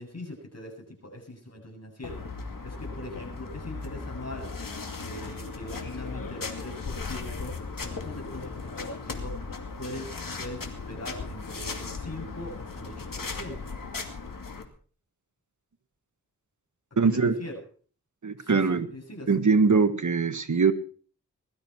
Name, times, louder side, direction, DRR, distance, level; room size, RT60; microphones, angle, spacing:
voice 1, 0.0-2.3 2.6-4.5 5.0-9.4 9.8-13.7 17.0-17.6 18.4-19.3, left 1 dB, 50° left, 1 dB, 7.8 m, -41 dB
sound 1, 2.0-14.6, left 4 dB, 80° left, 2.5 m, -37 dB
voice 2, 17.0-17.4 18.2-18.9 19.3-20.7, right 4 dB, 65° right, 9 dB, 1.5 m, -22 dB
20.5 x 12.5 x 4.6 m, 0.44 s
wide cardioid pair, 70°, 32 cm